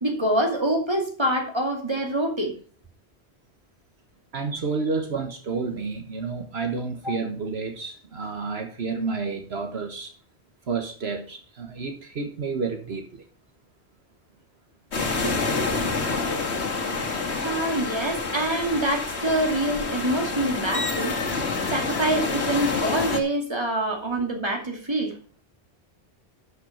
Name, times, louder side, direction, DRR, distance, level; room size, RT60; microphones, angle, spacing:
voice 1, 0.0-2.5 7.0-7.2 15.2-15.3 17.4-21.2 21.7-25.2, right 1 dB, 25° right, 2 dB, 2.5 m, -25 dB
voice 2, 4.3-10.1 10.7-13.3, right 4 dB, 70° right, 5 dB, 1.5 m, -30 dB
sound 1, 14.9-23.2, left 4 dB, 85° left, 1.7 m, -27 dB
12.0 x 5.9 x 5.7 m, 0.41 s
omnidirectional pair, 1.1 m